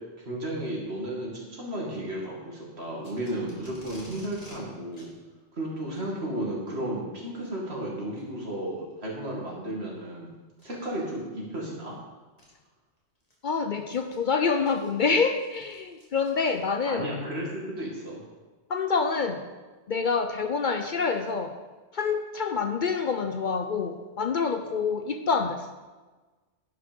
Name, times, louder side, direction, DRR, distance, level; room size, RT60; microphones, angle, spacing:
voice 1, 0.2-5.1 5.5-10.3 10.6-11.9 16.9-18.2, right 1 dB, 70° right, -3 dB, 2.6 m, -33 dB
Packing tape duct tape, 3.0-4.6 4.9-5.1 5.8-6.1 7.2-7.5 8.2-8.3 8.9-9.0 10.5-10.8 11.9-12.0 12.4-12.5 13.0-16.9, left 1 dB, 35° left, 2.3 m, -51 dB
voice 2, 13.4-17.1 18.7-19.5 19.9-21.5 21.9-25.7, left 5 dB, 55° left, 7 dB, 0.6 m, -27 dB
10.5 x 6.2 x 5.2 m, 1.3 s
omnidirectional pair, 1.1 m